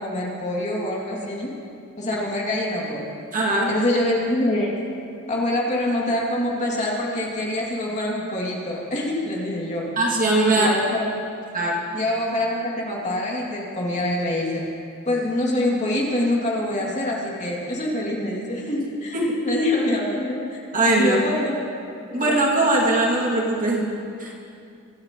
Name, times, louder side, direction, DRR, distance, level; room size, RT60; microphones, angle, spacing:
voice 1, 0.0-1.5 2.0-3.0 3.7-4.8 5.3-9.8 10.5-11.0 11.9-14.6 15.1-19.2 19.4-20.6 21.0-21.6 22.1-22.4, left 1 dB, 35° left, -3 dB, 2.4 m, -25 dB
voice 2, 3.3-3.7 10.0-10.7 11.5-11.8 19.1-19.3 20.7-21.2 22.1-23.9 24.2-24.3, right 2 dB, 40° right, -3 dB, 2.3 m, -20 dB
24.0 x 12.5 x 3.0 m, 2.5 s
head